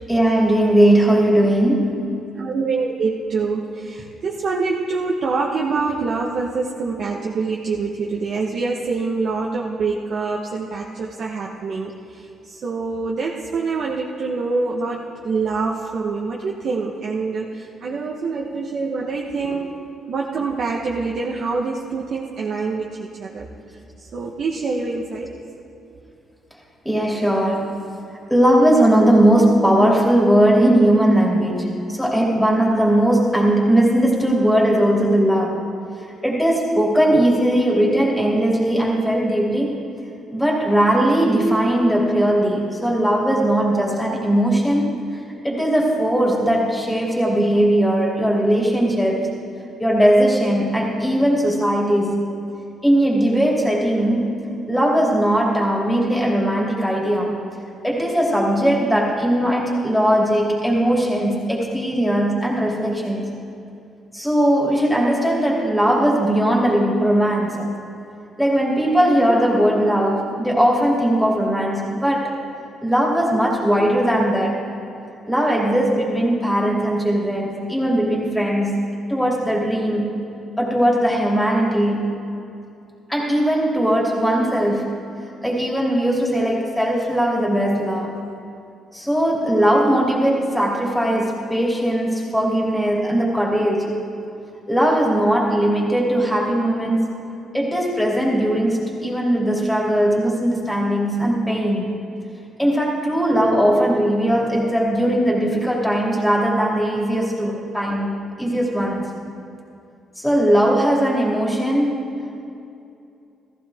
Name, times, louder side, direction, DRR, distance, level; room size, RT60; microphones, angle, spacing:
voice 1, 0.1-2.1 26.8-27.8 28.3-35.6 36.2-39.8 40.3-45.0 45.4-49.3 49.8-52.3 52.8-54.3 54.7-57.4 57.8-63.3 64.1-67.7 68.4-72.3 72.8-74.6 75.3-80.3 80.6-82.1 83.1-85.0 85.4-88.2 88.9-94.0 94.7-97.1 97.5-101.9 102.6-109.1 110.2-112.4, right 1 dB, 5° left, -3 dB, 2.8 m, -19 dB
voice 2, 2.3-19.8 20.1-23.5 24.0-25.3, right 4 dB, 60° right, -2 dB, 1.1 m, -25 dB
15.0 x 15.0 x 3.5 m, 2.6 s
cardioid pair, 90°, 0 cm